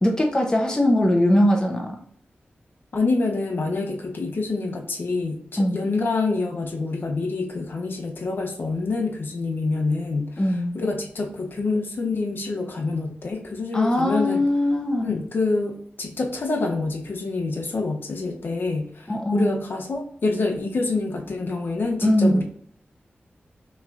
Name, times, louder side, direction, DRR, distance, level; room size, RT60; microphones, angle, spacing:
voice 1, 0.0-2.0 5.6-5.8 10.4-10.8 13.7-15.2 19.1-19.6 22.0-22.4, left 1 dB, 20° left, 1 dB, 0.7 m, -21 dB
voice 2, 2.9-14.5 15.0-22.4, left 3 dB, 65° left, 2 dB, 0.7 m, -26 dB
5.8 x 3.1 x 2.5 m, 0.63 s
wide cardioid pair, 115°, 4 cm